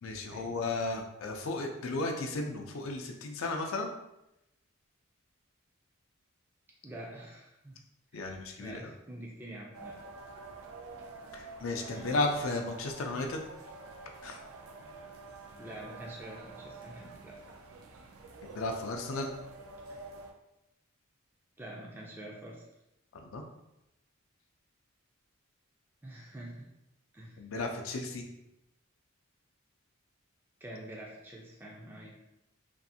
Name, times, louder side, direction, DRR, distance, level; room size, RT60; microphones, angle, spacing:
voice 1, 0.0-3.9 8.1-8.9 11.3-13.4 14.2-14.4 18.5-19.3 23.1-23.4 27.4-28.2, left 2 dB, 70° left, 2 dB, 0.4 m, -34 dB
voice 2, 6.8-7.8 8.1-10.1 11.9-12.2 15.5-17.4 21.6-22.6 26.0-26.7 27.1-27.4 30.6-32.2, right 1 dB, 10° right, -3 dB, 0.3 m, -46 dB
sound 1, 9.7-20.3, right 3 dB, 85° right, 0.4 m, -48 dB
2.6 x 2.4 x 2.6 m, 0.87 s
head